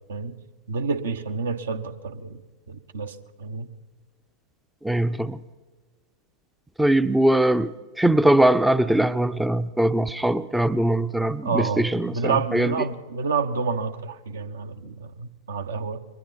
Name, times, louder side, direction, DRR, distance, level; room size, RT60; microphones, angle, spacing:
voice 1, 0.7-2.4 2.7-3.7 11.4-16.0, right 5 dB, 65° right, 9 dB, 1.1 m, -29 dB
voice 2, 4.8-5.4 6.8-7.7 8.0-11.6 11.9-12.1 12.5-12.7, right 1 dB, 5° right, 15 dB, 0.5 m, -21 dB
29.5 x 23.0 x 4.1 m, 1.4 s
figure-of-eight pair, 90°, 0 cm